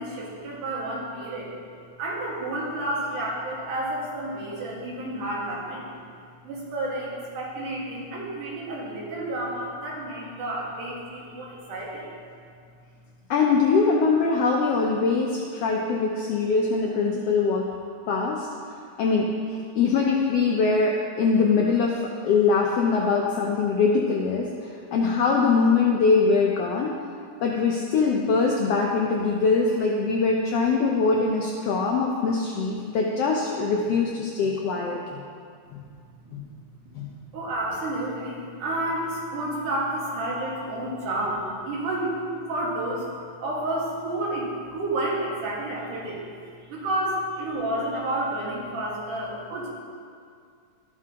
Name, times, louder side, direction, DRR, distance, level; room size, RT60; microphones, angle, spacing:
voice 1, 0.0-1.5 2.0-5.9 6.4-12.1 35.8-35.9 36.2-36.4 36.8-37.1 37.3-42.2 42.5-43.1 43.4-49.7, right 1 dB, 85° right, -5 dB, 3.2 m, -30 dB
voice 2, 13.3-17.7 18.1-18.5 19.0-19.3 19.7-26.9 27.4-35.2 35.7-35.8 36.3-36.5 37.0-37.1, left 4 dB, 80° left, -1 dB, 1.4 m, -22 dB
12.5 x 7.4 x 2.8 m, 2.2 s
omnidirectional pair, 3.5 m